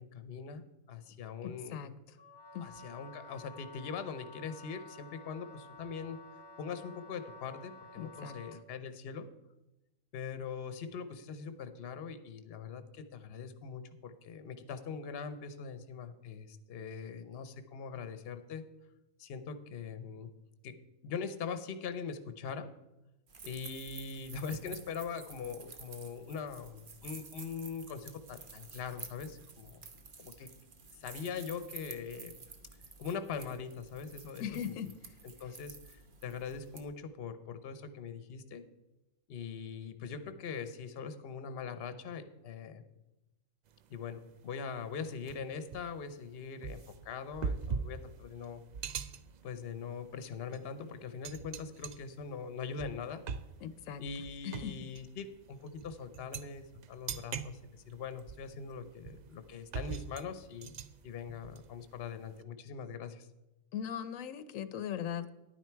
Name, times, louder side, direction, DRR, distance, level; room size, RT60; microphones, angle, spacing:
voice 1, 0.0-1.9 2.6-6.2 6.6-9.3 10.1-18.6 19.2-20.3 20.6-20.7 21.0-22.7 23.4-29.8 30.2-30.5 31.0-32.3 33.0-34.7 35.4-38.6 39.3-42.8 43.9-46.8 47.0-48.6 49.4-53.2 54.0-60.7 61.0-63.3, left 6 dB, 55° left, 10 dB, 0.9 m, -42 dB
voice 2, 1.4-1.9 2.5-2.6 8.0-8.4 34.4-34.9 53.6-54.0 54.4-54.7 63.7-65.3, left 9 dB, 90° left, 13 dB, 1.0 m, -39 dB
Wind instrument woodwind instrument, 2.2-8.7, left 2 dB, 25° left, 0.7 m, -52 dB
sound 1, 23.3-36.8, right 4 dB, 45° right, 1.0 m, -51 dB
sound 2, 43.7-44.0 44.4-44.5 45.2-62.4, right 6 dB, 80° right, 0.4 m, -43 dB
10.5 x 9.3 x 4.5 m, 0.96 s
omnidirectional pair, 1.3 m